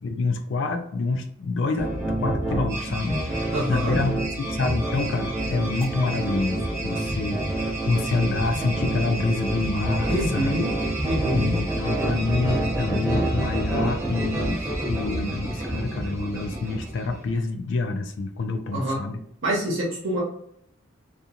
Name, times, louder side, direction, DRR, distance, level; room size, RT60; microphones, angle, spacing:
voice 1, 0.0-10.7 11.3-19.2, left 3 dB, 60° left, 6 dB, 0.3 m, -27 dB
sound 1, 1.8-17.3, right 1 dB, 15° right, 0.7 m, -28 dB
voice 2, 3.5-4.0 10.1-10.7 11.0-11.5 18.7-19.0 19.4-20.2, right 1 dB, 70° right, -4 dB, 0.8 m, -26 dB
2.8 x 2.4 x 2.3 m, 0.69 s
head